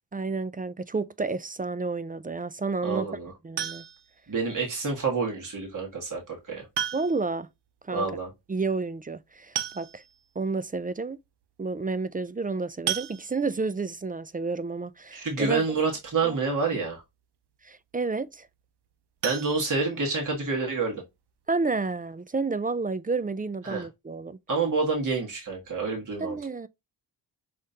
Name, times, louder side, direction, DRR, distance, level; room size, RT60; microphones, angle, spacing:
voice 1, 0.1-3.1 3.4-3.8 6.9-7.5 7.9-8.1 8.5-10.0 10.4-11.2 11.6-15.6 16.2-16.4 17.6-18.5 21.5-24.4 26.2-26.7, right 3 dB, 20° right, 0.3 m, -30 dB
voice 2, 2.8-3.3 4.3-6.7 7.9-8.3 15.1-17.0 19.2-21.0 23.6-23.9 24.5-26.4, right 4 dB, 45° right, 1.6 m, -28 dB
sound 1, 3.6-4.2 5.7-5.8 6.7-7.4 7.7-7.8 8.1-8.2 9.2-9.3 9.6-10.3 10.8-10.9 11.3-11.4 12.9-13.7 19.2-20.4 20.8-20.9 21.3-21.4 21.8-21.9, right 10 dB, 65° right, 0.6 m, -34 dB
5.2 x 3.5 x 2.8 m
cardioid pair, 65°, 43 cm